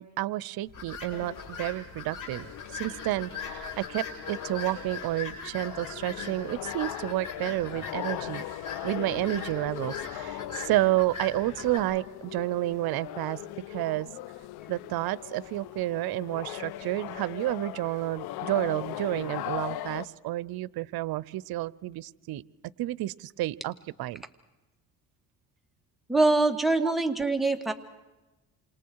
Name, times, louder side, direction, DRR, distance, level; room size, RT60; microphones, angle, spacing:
voice 1, 0.0-2.5 2.7-8.4 8.8-13.4 13.7-14.1 14.7-22.4 22.8-24.2 26.8-26.9, right 17 dB, 75° right, 21 dB, 0.8 m, -30 dB
sound 1, 0.7-11.8, left 5 dB, 55° left, 7.0 m, -41 dB
sound 2, 1.1-20.1, left 14 dB, 90° left, 0.9 m, -40 dB
voice 2, 26.1-27.7, right 2 dB, ahead, 3 dB, 2.3 m, -24 dB
28.0 x 27.5 x 4.8 m, 1.1 s
cardioid pair, 80°, 37 cm